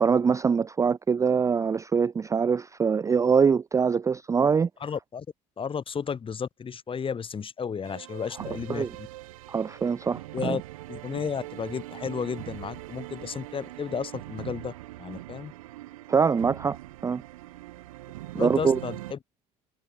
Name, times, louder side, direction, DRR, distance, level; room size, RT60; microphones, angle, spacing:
voice 1, 0.0-4.7 8.7-8.9 9.5-10.6 16.1-16.8 17.0-17.2 18.3-18.8, right 6 dB, 20° right, 0.4 m, -23 dB
voice 2, 4.8-5.3 5.6-9.1 10.3-10.6 10.9-14.7 15.0-15.5 18.4-19.2, left 6 dB, 30° left, 2.3 m, -33 dB
sound 1, 7.8-19.1, right 17 dB, 80° right, 7.1 m, -41 dB
hypercardioid pair, 75°, 17 cm